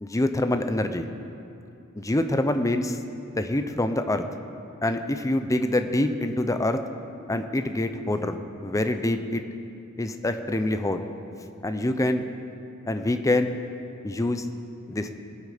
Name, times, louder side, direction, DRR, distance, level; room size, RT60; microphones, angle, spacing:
voice 1, 0.0-1.1 2.0-3.0 3.4-4.2 4.8-6.8 7.3-9.4 10.0-11.0 11.6-12.3 12.9-13.6 14.0-14.4 14.9-15.1, left 1 dB, 15° left, 8 dB, 0.6 m, -25 dB
20.5 x 8.3 x 5.1 m, 2.7 s
head